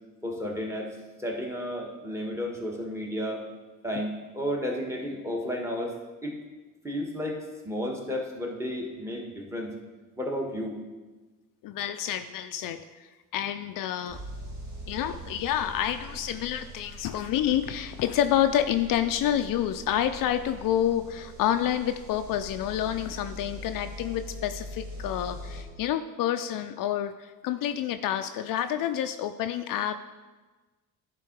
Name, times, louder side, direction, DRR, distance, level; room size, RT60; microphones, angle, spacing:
voice 1, 0.2-3.5 3.8-5.9 6.2-6.3 6.8-7.4 7.6-9.8 10.2-10.8, equal, 5° right, 0 dB, 1.6 m, -32 dB
voice 2, 11.6-14.2 14.9-29.9, left 11 dB, 60° left, 9 dB, 0.5 m, -28 dB
sound 1, 14.1-25.6, equal, 50° right, 2.1 m, -42 dB
10.5 x 3.8 x 4.6 m, 1.2 s
supercardioid pair, 80°, 37 cm